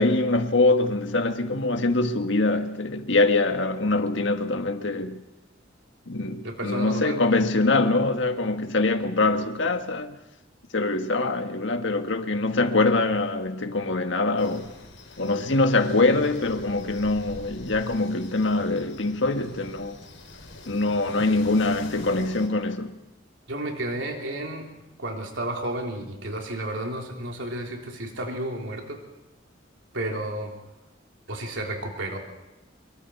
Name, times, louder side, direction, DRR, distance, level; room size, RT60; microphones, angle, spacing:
voice 1, 0.0-5.2 6.1-10.2 10.7-14.7 15.2-20.0 20.7-22.9, left 2 dB, 70° left, 1.6 m, -24 dB
voice 2, 6.4-7.2 23.5-24.7 25.0-29.0 29.9-30.5 31.3-32.2, right 1 dB, 80° right, 3.6 m, -32 dB
sound 1, 14.4-22.5, left 2 dB, 90° left, 3.8 m, -44 dB
25.0 x 23.5 x 4.7 m
head